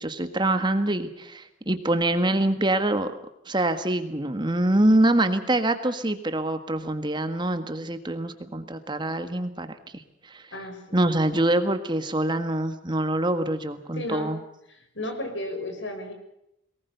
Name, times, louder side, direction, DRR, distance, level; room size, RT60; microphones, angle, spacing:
voice 1, 0.0-3.1 3.5-10.0 10.3-10.4 10.9-14.4, right 1 dB, 25° right, 9 dB, 1.6 m, -25 dB
voice 2, 10.5-11.1 13.9-14.3 14.7-16.1, left 1 dB, 75° left, 7 dB, 6.2 m, -34 dB
23.0 x 19.5 x 6.9 m, 0.80 s
head